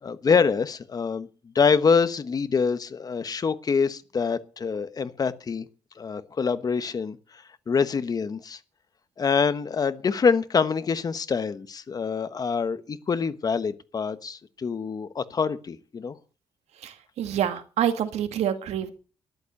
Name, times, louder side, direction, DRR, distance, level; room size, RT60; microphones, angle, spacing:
voice 1, 0.0-1.3 1.5-5.7 6.0-8.6 9.2-16.1, left 5 dB, 35° left, 1.1 m, -25 dB
voice 2, 16.8-18.9, right 10 dB, 90° right, 2.1 m, -27 dB
13.0 x 11.5 x 6.6 m
cardioid pair, 135°, 11 cm